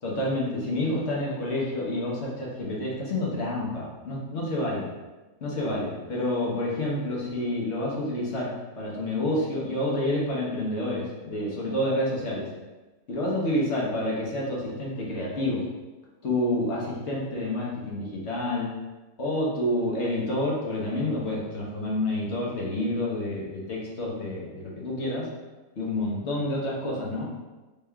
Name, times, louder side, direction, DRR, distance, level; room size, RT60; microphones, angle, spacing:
voice 1, 0.0-4.9 5.4-12.5 13.1-15.6 16.2-18.7 19.2-25.3 25.8-27.3, left 1 dB, 50° left, -4 dB, 1.0 m, -28 dB
4.1 x 3.5 x 2.3 m, 1.2 s
omnidirectional pair, 1.7 m